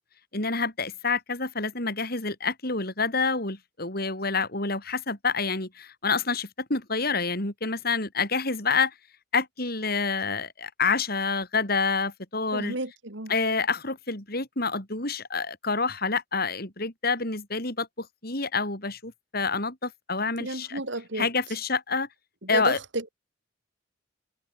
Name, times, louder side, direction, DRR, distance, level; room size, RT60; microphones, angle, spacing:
voice 1, 0.3-8.9 9.3-12.8 13.3-20.8 21.1-22.1 22.5-22.8, left 4 dB, 50° left, 6.4 m, -28 dB
voice 2, 12.5-13.3 20.4-21.3 22.4-23.2, right 2 dB, 65° right, 3.9 m, -32 dB
head